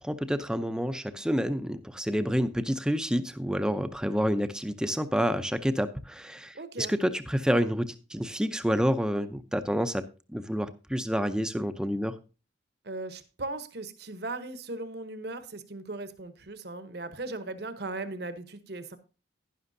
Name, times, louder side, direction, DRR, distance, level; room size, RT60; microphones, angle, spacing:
voice 1, 0.0-12.2, equal, 5° right, 0.5 m, -28 dB
voice 2, 6.5-6.9 12.8-19.0, right 2 dB, 55° right, 0.9 m, -38 dB
11.0 x 11.0 x 2.7 m
head